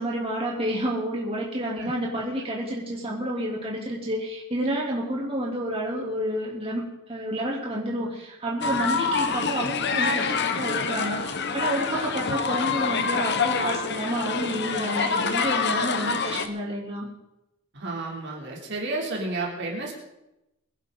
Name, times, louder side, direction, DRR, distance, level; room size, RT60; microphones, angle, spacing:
voice 1, 0.0-6.8 7.1-17.0, right 1 dB, 30° right, -3 dB, 3.2 m, -29 dB
sound 1, 8.6-16.5, left 5 dB, 55° left, 1.1 m, -26 dB
voice 2, 17.7-19.9, right 2 dB, 60° right, -1 dB, 3.4 m, -31 dB
23.0 x 11.0 x 4.0 m, 0.91 s
head